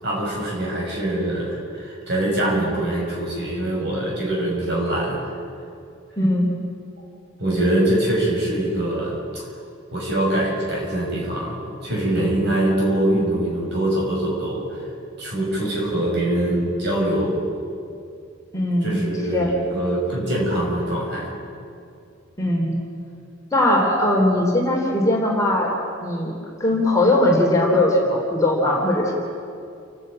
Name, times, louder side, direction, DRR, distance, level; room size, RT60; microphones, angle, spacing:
voice 1, 0.0-5.3 7.4-9.5 9.9-14.8 15.2-17.4 18.8-21.3, right 1 dB, 55° right, -3 dB, 6.4 m, -23 dB
voice 2, 6.2-6.5 18.5-19.0 19.3-19.5 22.4-22.7 23.5-25.7 26.0-26.3 26.6-29.1, left 1 dB, 15° left, -2 dB, 3.3 m, -19 dB
30.0 x 10.5 x 8.8 m, 2.5 s
head